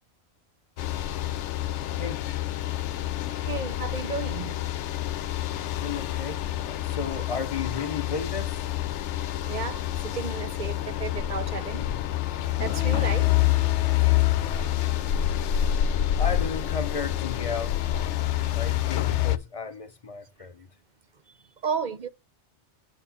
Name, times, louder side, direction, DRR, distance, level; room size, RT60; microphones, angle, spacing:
sound 1, 0.8-19.4, left 13 dB, 85° left, 0.9 m, -27 dB
voice 1, 3.5-4.6 9.4-11.9 12.6-13.3 18.1-18.3 21.6-22.1, right 5 dB, 45° right, 0.8 m, -33 dB
voice 2, 5.8-8.7 16.2-17.9 18.5-20.7, left 5 dB, 35° left, 0.8 m, -34 dB
9.0 x 4.2 x 4.3 m
omnidirectional pair, 1.2 m